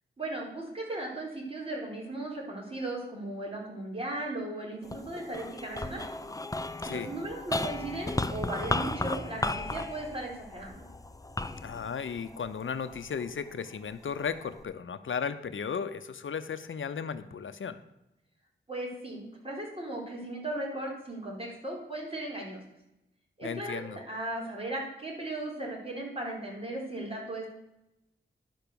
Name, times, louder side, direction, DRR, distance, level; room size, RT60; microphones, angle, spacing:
voice 1, 0.2-6.0 6.8-10.8 18.7-22.6 23.4-27.5, right 2 dB, 30° right, -2 dB, 4.0 m, -37 dB
sound 1, 4.8-13.3 13.9-14.6, left 2 dB, 15° left, 0.6 m, -35 dB
voice 2, 11.6-17.8 23.4-24.0, left 6 dB, 75° left, 11 dB, 0.6 m, -35 dB
11.0 x 5.9 x 6.9 m, 0.88 s
wide cardioid pair, 65°, 20 cm